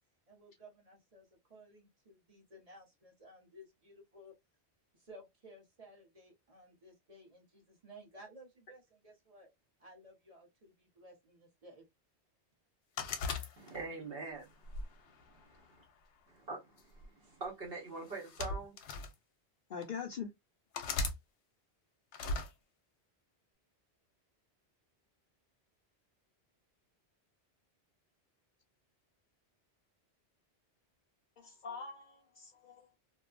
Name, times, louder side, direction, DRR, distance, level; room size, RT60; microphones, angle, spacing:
voice 1, 0.3-4.3 5.0-9.5 9.8-11.9, right 1 dB, 35° right, 1.0 m, -57 dB
sound 1, 13.0-14.0 14.7-15.8 16.8-17.1 18.1-19.1 19.8-19.9 20.7-21.2 22.1-22.5, left 3 dB, 85° left, 0.9 m, -38 dB
voice 2, 13.6-15.4 16.3-18.8, right 3 dB, 60° right, 1.2 m, -44 dB
voice 3, 19.7-20.3 31.4-33.0, left 6 dB, 55° left, 0.6 m, -43 dB
2.6 x 2.2 x 2.4 m
omnidirectional pair, 1.1 m